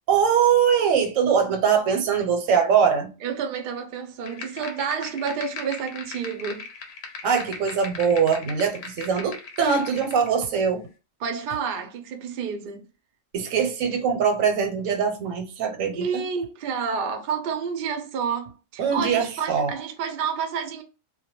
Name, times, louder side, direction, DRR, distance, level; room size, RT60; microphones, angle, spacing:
voice 1, 0.1-3.1 7.2-10.9 13.3-16.1 18.8-19.7, right 7 dB, 85° right, 1.0 m, -22 dB
voice 2, 3.2-6.7 11.2-12.9 15.9-20.8, right 6 dB, 60° right, 0.5 m, -29 dB
sound 1, 4.2-10.3, left 4 dB, 65° left, 0.7 m, -39 dB
2.2 x 2.2 x 2.9 m
omnidirectional pair, 1.3 m